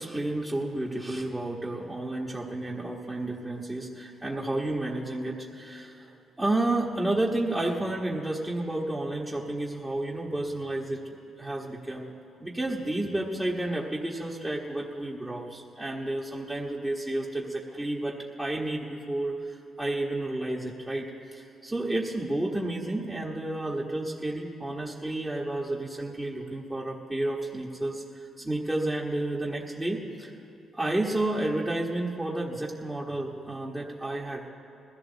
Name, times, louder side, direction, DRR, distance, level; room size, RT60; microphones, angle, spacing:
voice 1, 0.0-6.1 6.4-11.0 11.4-12.1 12.4-28.0 28.4-30.3 30.7-34.5, right 1 dB, 10° right, -5 dB, 1.4 m, -31 dB
20.5 x 14.0 x 4.0 m, 2.6 s
cardioid pair, 90°, 0 cm